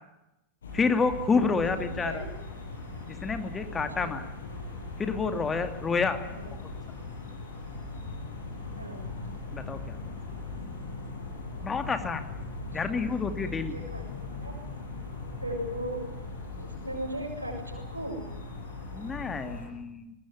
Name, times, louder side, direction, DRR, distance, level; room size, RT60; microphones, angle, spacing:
sound 1, 0.6-19.7, left 3 dB, 65° left, 7.2 m, -39 dB
voice 1, 0.7-2.3 3.2-4.2 5.0-6.2 9.5-10.0 11.6-12.2 12.7-13.7 18.9-20.1, left 4 dB, 15° left, 8 dB, 2.6 m, -28 dB
voice 2, 1.7-2.3 3.8-4.1 6.3-6.5 8.8-9.0 12.8-13.0 13.3-14.6 15.4-16.0 16.6-18.2, right 1 dB, 85° right, 3 dB, 7.3 m, -38 dB
21.5 x 19.5 x 9.9 m, 0.94 s
figure-of-eight pair, 90°, 0 cm